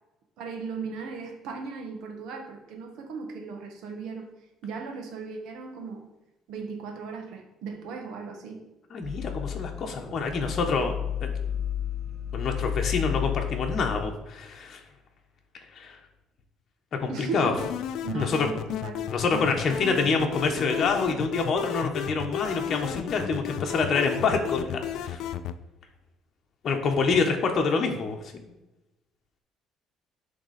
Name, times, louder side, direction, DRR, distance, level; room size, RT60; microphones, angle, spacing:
voice 1, 0.4-4.3 4.6-6.1 6.5-8.6 17.1-17.7 18.0-19.1, right 4 dB, 75° right, 3 dB, 1.4 m, -37 dB
voice 2, 8.9-10.9 11.2-11.3 12.3-14.8 15.7-16.0 17.0-17.5 18.1-18.5 19.1-25.2 26.6-28.5, left 4 dB, 45° left, 2 dB, 1.1 m, -26 dB
sound 1, 9.0-14.0, left 9 dB, 10° right, 1.4 m, -32 dB
sound 2, 17.6-25.6, left 10 dB, 70° left, 0.4 m, -34 dB
9.9 x 3.6 x 4.2 m, 1.0 s
cardioid pair, 125°, 0 cm